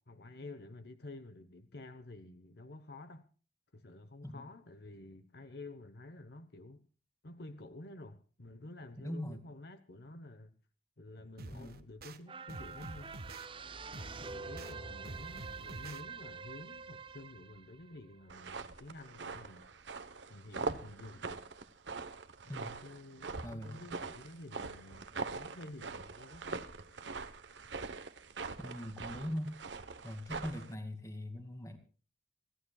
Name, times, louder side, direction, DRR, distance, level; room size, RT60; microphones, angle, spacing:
voice 1, 0.0-3.3 3.7-6.8 7.2-10.5 11.0-13.1 13.9-19.7 20.3-21.4 22.4-26.7, left 2 dB, 65° left, 1.0 m, -50 dB
voice 2, 9.0-9.4 11.5-11.7 14.3-14.4 22.5-22.8 23.4-23.8 28.6-29.5 30.0-31.8, equal, 20° left, 2.2 m, -41 dB
sound 1, 11.4-12.2 12.5-13.5 13.9-14.7 15.0-16.0, right 2 dB, 60° right, 1.1 m, -48 dB
sound 2, 12.3-18.9 19.3-19.4, right 4 dB, 30° right, 0.6 m, -47 dB
sound 3, 18.3-30.7, right 4 dB, 90° right, 1.0 m, -43 dB
26.5 x 14.5 x 2.3 m
head